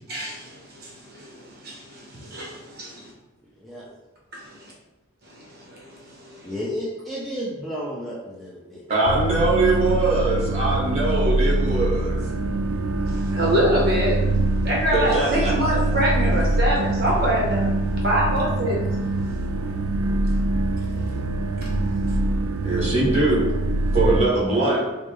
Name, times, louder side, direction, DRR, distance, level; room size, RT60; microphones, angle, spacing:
voice 1, 0.1-3.1 4.3-4.7 5.2-6.5 13.0-14.1 14.6-17.7 18.0-18.8 21.6-21.7, equal, 50° right, -4 dB, 0.9 m, -25 dB
voice 2, 6.4-8.8, equal, ahead, -7 dB, 0.5 m, -32 dB
voice 3, 8.9-12.2 14.9-15.5 15.9-16.0 22.6-23.5 23.9-24.8, right 2 dB, 30° right, -5 dB, 1.3 m, -22 dB
sound 1, 9.1-24.3, right 2 dB, 80° right, 0.3 m, -24 dB
4.7 x 2.0 x 3.3 m, 1.1 s
head